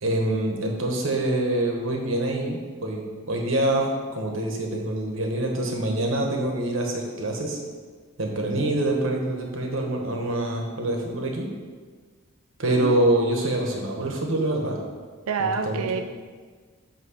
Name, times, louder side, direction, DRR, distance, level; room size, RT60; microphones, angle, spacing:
voice 1, 0.0-3.0 3.3-3.9 4.1-7.6 8.2-11.5 12.6-14.8 15.4-15.8, right 1 dB, 65° right, 1 dB, 1.2 m, -25 dB
voice 2, 12.7-13.4 15.3-16.0, right 5 dB, 85° right, 8 dB, 0.4 m, -28 dB
8.4 x 3.0 x 6.4 m, 1.5 s
head